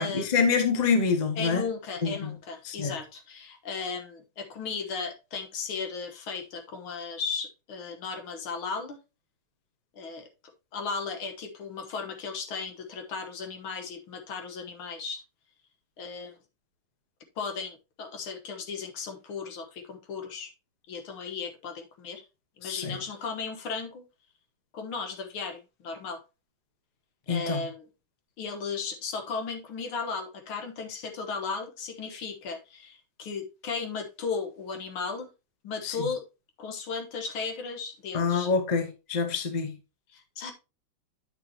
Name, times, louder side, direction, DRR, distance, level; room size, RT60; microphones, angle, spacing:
voice 1, 0.0-1.6 2.0-2.3 2.6-2.9 22.6-23.0 27.3-27.6 35.8-35.9 38.1-39.7, left 5 dB, 30° left, 0.9 m, -26 dB
voice 2, 1.4-9.0 9.9-10.3 10.7-15.2 16.0-16.4 17.4-20.5 20.9-22.2 22.6-24.0 24.7-26.2 27.3-27.9 28.4-35.3 35.6-36.2 36.6-38.5 40.1-40.5, left 5 dB, 80° left, 2.0 m, -36 dB
9.3 x 5.9 x 2.8 m
omnidirectional pair, 2.3 m